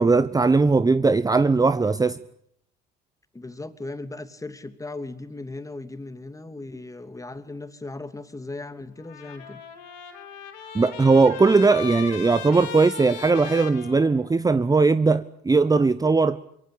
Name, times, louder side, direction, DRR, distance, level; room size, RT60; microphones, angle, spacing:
voice 1, 0.0-2.2 10.7-16.4, right 4 dB, 15° right, 0.9 m, -19 dB
voice 2, 3.3-9.6, left 2 dB, 15° left, 2.8 m, -37 dB
Trumpet, 9.0-14.6, left 8 dB, 80° left, 4.7 m, -38 dB
25.0 x 22.5 x 8.7 m
hypercardioid pair, 65°, 21 cm